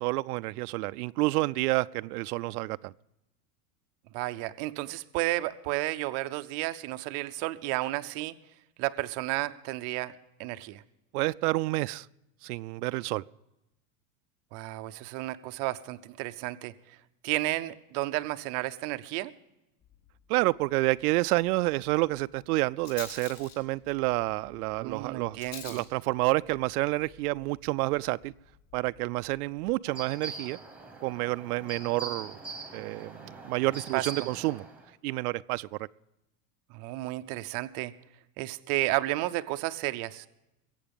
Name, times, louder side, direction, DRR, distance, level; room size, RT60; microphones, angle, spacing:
voice 1, 0.0-2.9 11.1-12.1 12.4-13.2 20.3-25.4 25.7-28.3 28.7-30.6 31.0-32.4 32.7-34.6 35.0-35.8, right 21 dB, 90° right, 15 dB, 0.5 m, -29 dB
voice 2, 4.1-8.3 8.8-10.1 10.4-10.8 14.5-16.7 17.2-19.3 24.8-25.8 33.9-34.0 36.7-37.9 38.4-40.3, right 18 dB, 35° right, 10 dB, 0.5 m, -32 dB
Rattle, 19.8-29.7, left 8 dB, 30° left, 3.5 m, -51 dB
sound 1, 29.8-34.9, right 3 dB, 5° right, 1.0 m, -42 dB
21.5 x 8.5 x 5.2 m, 0.92 s
supercardioid pair, 165°, 44 cm